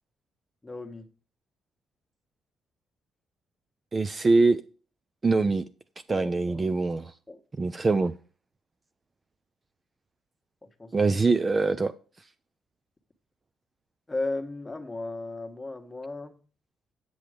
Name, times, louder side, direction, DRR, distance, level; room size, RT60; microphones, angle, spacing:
voice 1, 0.6-1.1 6.1-6.7 7.3-7.4 10.6-10.9 14.1-16.4, left 2 dB, 15° left, 1.4 m, -35 dB
voice 2, 3.9-4.6 5.2-5.6 6.1-7.1 7.6-8.1 10.9-11.9, right 3 dB, 30° right, 0.5 m, -23 dB
8.7 x 7.8 x 5.0 m
cardioid pair, 90°, 0 cm